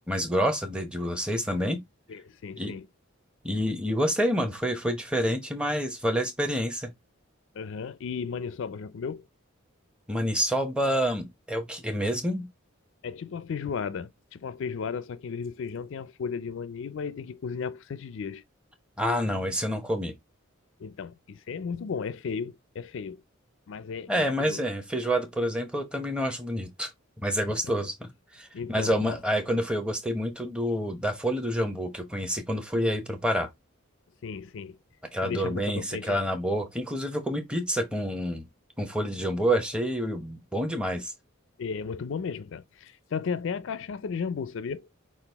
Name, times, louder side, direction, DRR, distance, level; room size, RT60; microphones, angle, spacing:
voice 1, 0.0-1.8 2.6-2.7 3.4-6.9 10.1-12.4 19.0-20.1 24.1-26.9 27.2-33.5 35.1-38.5 38.8-41.1, equal, 5° right, 0.9 m, -28 dB
voice 2, 2.1-2.9 7.5-9.3 13.0-18.4 20.8-23.2 23.7-24.6 28.5-29.2 34.2-34.8 35.2-36.2 41.6-44.9, left 6 dB, 65° left, 0.4 m, -35 dB
5.9 x 2.4 x 3.4 m
head